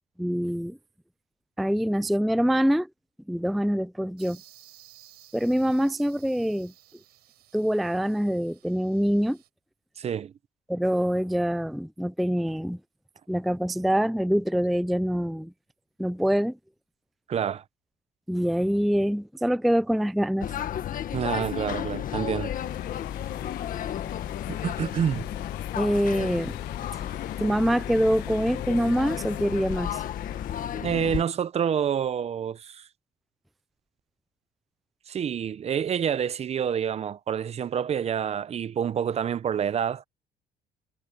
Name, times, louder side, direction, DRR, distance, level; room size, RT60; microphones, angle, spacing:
voice 1, 0.2-0.8 1.6-2.9 3.3-4.4 5.3-6.7 7.5-9.4 10.7-12.8 13.3-15.5 16.0-16.6 18.3-20.5 25.8-26.6 27.4-30.0, equal, ahead, 0.4 m, -25 dB
sound 1, 4.2-9.5, right 14 dB, 75° right, 4.8 m, -55 dB
voice 2, 10.0-10.3 17.3-17.6 21.1-22.6 24.6-25.3 30.7-32.9 35.1-40.0, right 8 dB, 40° right, 0.6 m, -28 dB
sound 2, 20.4-31.2, left 10 dB, 55° left, 1.6 m, -33 dB
sound 3, 22.5-30.7, left 19 dB, 85° left, 0.6 m, -43 dB
cardioid pair, 110°, 17 cm